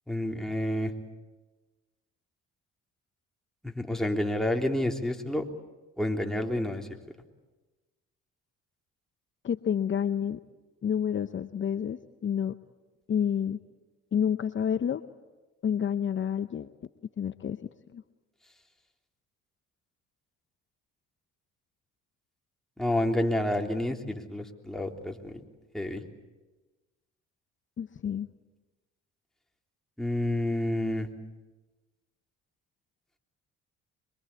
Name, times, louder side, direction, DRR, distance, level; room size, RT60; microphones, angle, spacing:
voice 1, 0.1-0.9 3.6-5.4 6.0-6.9 22.8-25.4 25.7-26.0 30.0-31.1, left 1 dB, ahead, 2 dB, 3.5 m, -29 dB
voice 2, 9.4-10.4 10.8-12.6 13.1-13.6 14.1-15.0 15.6-16.7 17.2-17.6 17.9-18.0 27.8-28.3, left 8 dB, 40° left, 11 dB, 0.8 m, -29 dB
25.5 x 23.5 x 8.4 m, 1.2 s
supercardioid pair, 70°, 31 cm